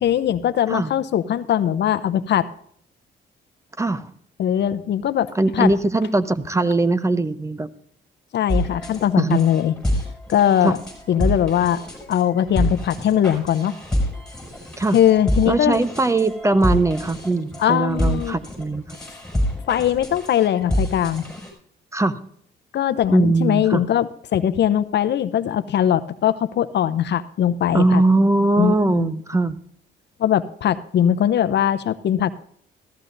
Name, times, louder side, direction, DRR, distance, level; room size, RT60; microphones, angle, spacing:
voice 1, 0.0-2.5 4.4-5.7 8.3-9.7 10.3-10.8 11.1-11.8 12.1-13.7 14.9-15.8 17.6-18.4 19.7-21.2 22.7-28.0 28.6-29.1 30.2-32.3, left 10 dB, 60° left, 13 dB, 0.7 m, -20 dB
voice 2, 3.8-4.1 5.3-7.7 9.2-9.4 10.6-10.7 14.8-15.0 15.5-18.8 21.9-22.2 23.1-23.8 27.7-29.6, right 2 dB, 15° right, 14 dB, 0.7 m, -20 dB
sound 1, 8.5-21.5, equal, 5° left, 5.7 m, -27 dB
14.5 x 14.0 x 2.6 m, 0.64 s
cardioid pair, 90°, 20 cm